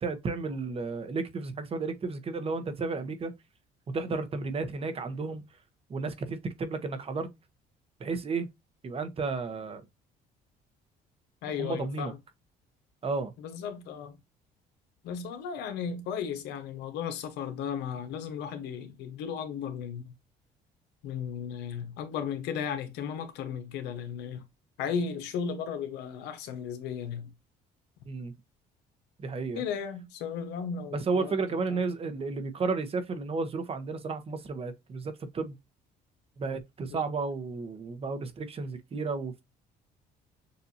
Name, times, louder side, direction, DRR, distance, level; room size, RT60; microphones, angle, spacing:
voice 1, 0.0-3.3 3.9-5.4 5.9-7.3 8.0-8.5 8.8-9.8 11.5-12.1 13.0-13.3 28.1-28.3 29.2-29.6 30.9-35.6 36.4-39.4, right 4 dB, 35° right, 1.0 m, -33 dB
voice 2, 11.4-12.2 13.4-14.1 15.0-20.1 21.0-24.4 24.8-27.3 29.5-31.8 36.9-37.0, left 7 dB, 85° left, 1.2 m, -35 dB
6.9 x 2.6 x 2.8 m
cardioid pair, 110°, 17 cm